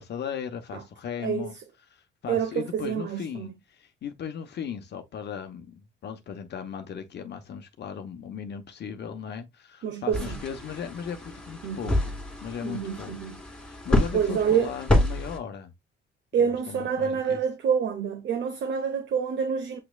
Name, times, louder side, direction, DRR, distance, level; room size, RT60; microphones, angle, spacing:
voice 1, 0.0-1.5 1.9-12.2 12.4-13.1 13.7-15.7 16.4-17.4, left 7 dB, 60° left, 0.9 m, -37 dB
voice 2, 2.3-3.5 9.8-10.4 11.6-11.9 12.6-13.4 14.1-14.7 16.3-19.8, right 7 dB, 65° right, 0.9 m, -27 dB
sound 1, 10.1-15.4, left 1 dB, 5° left, 1.9 m, -28 dB
7.6 x 3.0 x 2.3 m
cardioid pair, 90°, 20 cm